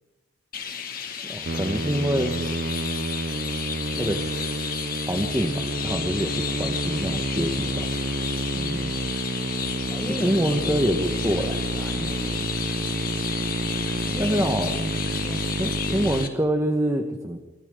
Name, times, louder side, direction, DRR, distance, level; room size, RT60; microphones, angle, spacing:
Chirp tweet, 0.5-16.3, left 7 dB, 45° left, 2.6 m, -33 dB
voice 1, 1.3-2.4 3.9-4.7 5.1-7.9 10.2-11.6 14.2-14.7 15.6-17.4, equal, 15° right, 4 dB, 1.5 m, -26 dB
Musical instrument, 1.4-16.3, right 2 dB, 45° right, 0.9 m, -29 dB
voice 2, 8.5-9.1 9.9-10.4 11.7-12.5 14.0-14.4 14.8-15.5, equal, 10° left, 1 dB, 1.8 m, -36 dB
27.0 x 26.0 x 3.9 m, 1.1 s
head